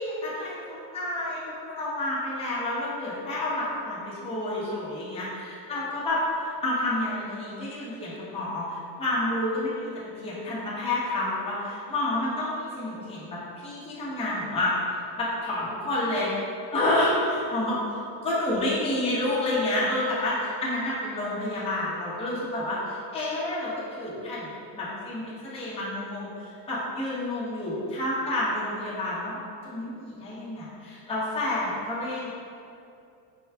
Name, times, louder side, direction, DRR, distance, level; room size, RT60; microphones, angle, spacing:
voice 1, 0.0-9.9 10.2-14.7 15.2-16.3 16.7-29.4 29.6-32.3, left 1 dB, 10° left, -9 dB, 0.9 m, -29 dB
4.5 x 2.3 x 3.3 m, 2.6 s
cardioid pair, 125°, 49 cm